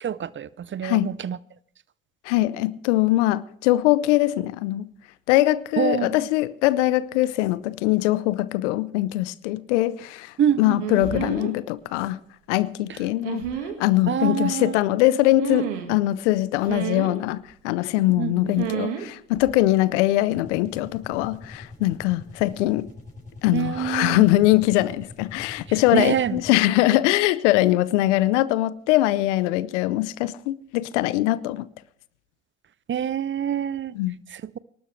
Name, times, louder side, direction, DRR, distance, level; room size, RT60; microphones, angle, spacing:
voice 1, 0.0-1.4 5.8-6.3 10.4-11.0 12.9-13.0 14.1-14.8 18.1-18.5 23.5-24.3 25.9-26.4 32.9-33.9 34.3-34.6, right 9 dB, 35° right, 0.6 m, -26 dB
voice 2, 0.8-1.1 2.2-4.9 5.3-12.2 12.5-13.4 13.8-22.9 23.4-31.7 33.9-34.1, left 16 dB, 85° left, 0.7 m, -22 dB
sound 1, 10.8-11.5 13.2-13.7 15.4-16.0 16.6-17.1 18.6-19.0 19.3-19.6, right 9 dB, 85° right, 1.8 m, -29 dB
sound 2, 20.3-26.8, left 2 dB, 20° left, 6.7 m, -44 dB
24.5 x 12.0 x 3.2 m
hypercardioid pair, 55°, 35 cm